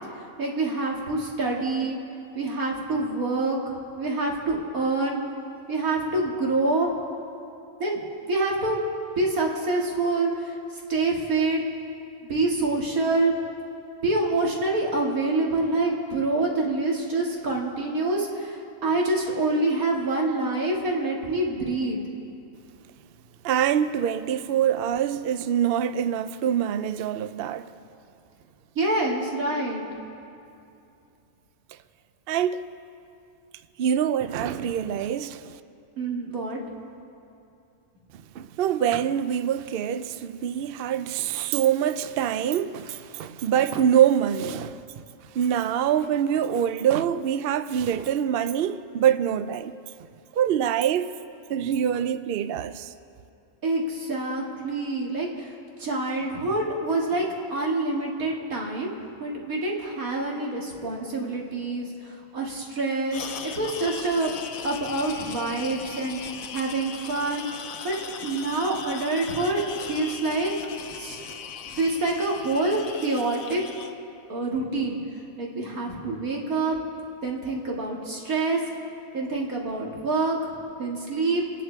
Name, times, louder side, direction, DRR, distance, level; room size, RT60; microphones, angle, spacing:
voice 1, 0.4-2.0 2.3-5.2 5.7-6.9 7.8-8.0 8.3-8.8 9.2-10.6 10.9-11.6 12.3-13.3 14.0-22.0 28.8-29.9 36.0-36.6 53.6-55.5 55.8-58.9 59.2-64.3 64.6-66.2 66.5-67.5 67.8-68.0 68.2-70.5 71.0-71.2 71.8-73.6 74.3-75.0 75.4-76.8 77.2-78.6 79.1-80.5 80.8-81.4, right 2 dB, 80° right, 2.6 m, -26 dB
voice 2, 23.4-27.7 32.3-32.6 33.8-35.6 38.3-44.8 45.3-49.8 50.3-51.1 51.5-52.9, right 9 dB, 65° right, 0.6 m, -25 dB
sound 1, 63.1-73.9, left 6 dB, 70° left, 1.2 m, -39 dB
28.5 x 10.0 x 4.6 m
omnidirectional pair, 1.5 m